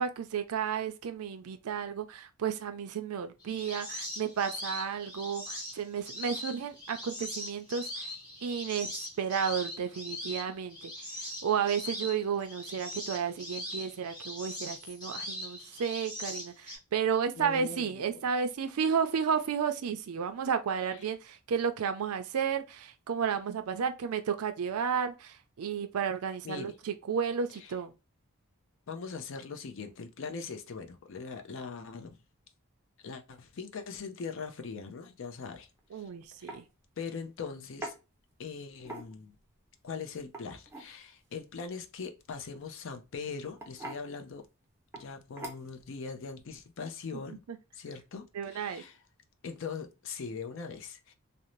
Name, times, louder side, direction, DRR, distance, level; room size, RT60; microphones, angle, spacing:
voice 1, 0.0-8.1 8.4-10.9 11.4-27.9 35.9-36.7 47.1-47.6 48.3-48.8, right 7 dB, 80° right, 0.4 m, -32 dB
sound 1, 3.4-16.8, left 1 dB, 20° left, 1.2 m, -41 dB
voice 2, 17.4-18.2 20.8-21.0 26.4-26.7 28.9-32.2 33.0-36.1 36.4-36.6 37.0-38.0 38.4-39.4 39.8-44.5 44.9-47.4 47.7-49.0 49.4-51.1, left 5 dB, 60° left, 0.5 m, -41 dB
sound 2, 35.8-36.0 36.5-36.6 37.8-38.0 38.8-39.3 40.2-40.9 42.5-42.8 43.6-44.0 44.9-45.1 45.4-45.8, right 1 dB, 10° right, 0.5 m, -42 dB
2.6 x 2.0 x 2.9 m
head